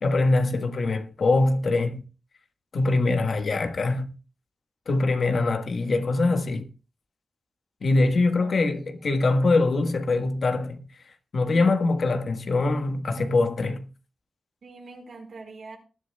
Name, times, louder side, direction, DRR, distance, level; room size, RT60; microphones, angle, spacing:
voice 1, 0.0-2.0 2.7-4.1 4.9-6.7 7.8-10.8 11.3-13.8, left 3 dB, 70° left, 1.4 m, -23 dB
voice 2, 8.4-9.0 14.6-15.8, right 3 dB, 80° right, 4.5 m, -44 dB
20.0 x 11.5 x 2.3 m
cardioid pair, 55°, 0 cm